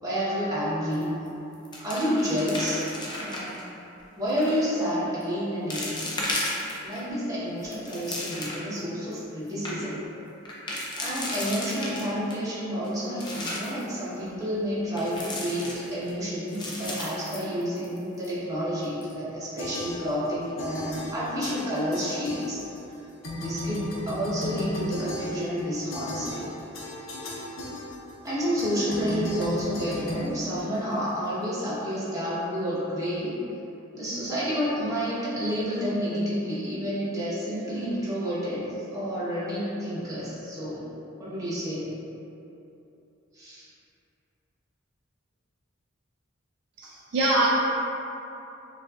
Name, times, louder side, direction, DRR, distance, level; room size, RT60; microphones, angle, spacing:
voice 1, 0.0-1.1 1.8-2.8 3.1-3.5 4.2-6.0 6.3-6.5 6.8-10.0 11.0-22.6 23.3-26.4 28.2-33.4 33.9-40.9 41.2-41.9 43.3-43.7, equal, 20° right, -10 dB, 1.0 m, -29 dB
sound 1, 0.9-1.3 1.5-3.6 4.3-4.6 5.2-5.3 5.7-7.0 7.5-8.8 9.2-9.3 9.5-9.7 10.5-12.4 12.8-13.8 15.0-16.1 16.5-18.0 18.2-18.3 18.8-19.1, left 1 dB, 20° left, 0.5 m, -34 dB
sound 2, 19.6-20.3 20.6-22.9 23.2-31.1, left 1 dB, 85° left, 0.7 m, -36 dB
voice 2, 46.8-47.5, right 2 dB, 55° right, -5 dB, 0.4 m, -24 dB
6.1 x 2.5 x 2.4 m, 2.9 s
head